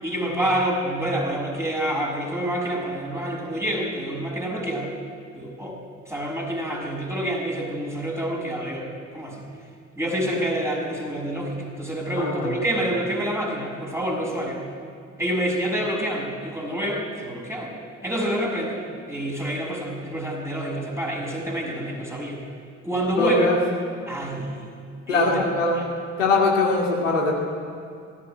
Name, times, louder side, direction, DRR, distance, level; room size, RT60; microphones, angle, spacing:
voice 1, 0.0-4.9 5.3-5.8 6.1-8.9 9.1-9.4 10.0-14.6 15.2-17.7 18.0-18.8 19.1-22.4 22.8-23.5 24.1-24.7 25.1-25.4 25.7-25.9, right 1 dB, 5° right, -1 dB, 6.4 m, -27 dB
voice 2, 12.1-12.5 23.2-23.6 25.1-25.8 26.2-27.3, left 3 dB, 80° left, -1 dB, 2.4 m, -21 dB
18.0 x 16.0 x 9.1 m, 2.4 s
figure-of-eight pair, 45°, 38 cm